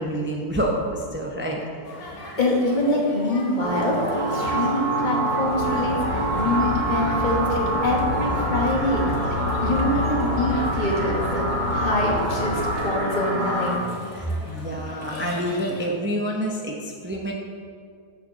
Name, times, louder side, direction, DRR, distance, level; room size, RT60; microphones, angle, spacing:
voice 1, 0.0-1.6 2.2-2.4 14.1-17.3, equal, 20° right, -2 dB, 0.3 m, -27 dB
sound 1, 1.8-15.9, left 1 dB, 60° left, 1.7 m, -40 dB
voice 2, 2.0-9.2 9.6-13.8, left 1 dB, 30° left, -2 dB, 1.3 m, -25 dB
sound 2, 3.6-13.7, right 1 dB, 45° right, 2.1 m, -26 dB
sound 3, 5.4-12.8, left 4 dB, 90° left, 2.3 m, -31 dB
6.6 x 6.5 x 6.1 m, 2.2 s
omnidirectional pair, 1.7 m